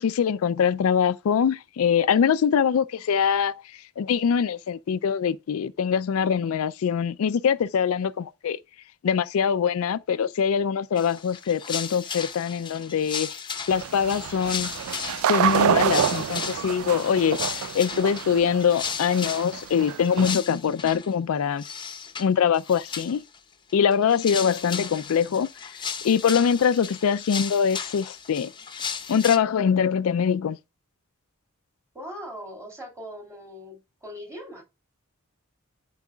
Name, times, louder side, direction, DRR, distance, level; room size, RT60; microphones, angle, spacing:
voice 1, 0.0-3.6 4.0-8.6 9.0-13.3 13.7-14.7 15.3-21.6 22.2-23.2 23.7-25.5 26.0-28.5 29.1-30.6, left 7 dB, 75° left, 0.4 m, -23 dB
sound 1, 11.0-21.1 21.6-22.3 22.5-23.4 23.7-29.4, left 6 dB, 20° left, 0.8 m, -35 dB
bowling lanes, 13.7-20.3, right 8 dB, 70° right, 0.3 m, -27 dB
voice 2, 31.9-34.6, equal, 15° right, 2.8 m, -40 dB
12.0 x 4.7 x 2.3 m
head